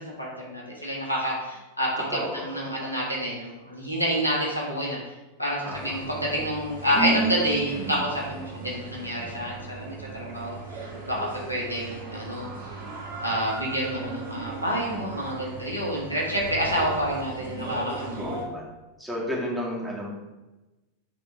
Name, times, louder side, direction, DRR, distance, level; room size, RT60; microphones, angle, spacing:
voice 1, 0.0-5.0 5.4-11.2 11.5-12.5 13.2-18.2, equal, 85° left, -3 dB, 1.7 m, -28 dB
voice 2, 2.1-2.5 2.8-2.9 5.6-6.0 9.2-9.4 14.8-15.2 18.2-18.7 19.0-20.1, equal, 5° right, -4 dB, 2.0 m, -33 dB
sound 1, 5.7-18.5, right 3 dB, 60° right, 1.8 m, -35 dB
7.2 x 3.8 x 4.7 m, 1.1 s
figure-of-eight pair, 90°, 0 cm